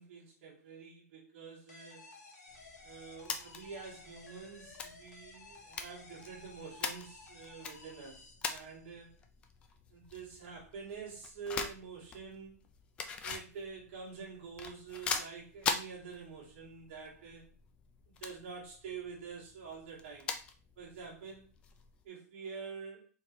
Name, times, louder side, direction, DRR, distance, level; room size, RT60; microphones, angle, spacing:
voice 1, 0.0-2.1 2.8-9.2 9.9-12.6 13.2-17.5 18.1-20.3 20.8-21.5 22.0-23.1, right 5 dB, 45° right, -4 dB, 2.1 m, -47 dB
sound 1, 1.7-9.0, left 3 dB, 80° left, 1.5 m, -55 dB
sound 2, 2.5-22.0, left 6 dB, 10° left, 0.3 m, -43 dB
4.3 x 4.1 x 3.0 m, 0.38 s
hypercardioid pair, 160°, 9 cm